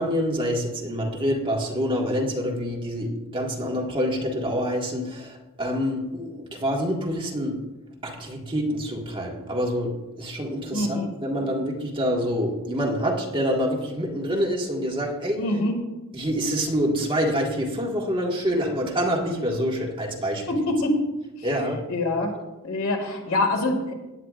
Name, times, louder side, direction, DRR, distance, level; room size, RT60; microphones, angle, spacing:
voice 1, 0.0-7.6 8.0-15.4 16.1-20.5 21.4-21.9, equal, 25° right, -2 dB, 1.7 m, -26 dB
voice 2, 10.7-11.1 15.4-15.7 20.5-21.0 21.9-22.3 22.6-23.9, left 2 dB, 75° left, 2 dB, 2.1 m, -24 dB
17.0 x 9.7 x 2.5 m, 1.0 s
head